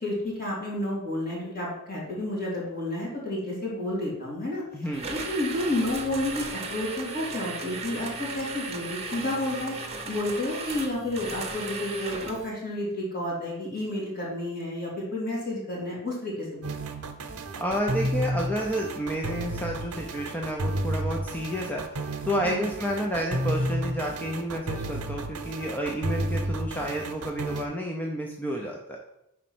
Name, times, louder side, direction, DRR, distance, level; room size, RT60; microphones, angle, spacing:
voice 1, 0.0-4.6 5.1-16.7 22.4-22.7, left 1 dB, 40° left, -5 dB, 2.7 m, -31 dB
voice 2, 4.7-5.1 17.6-29.0, equal, 5° left, 0 dB, 0.5 m, -30 dB
sound 1, 4.9-12.5, right 4 dB, 30° right, 0.9 m, -36 dB
sound 2, 16.6-27.7, right 1 dB, 90° right, 0.8 m, -31 dB
5.1 x 4.3 x 6.0 m, 0.85 s
head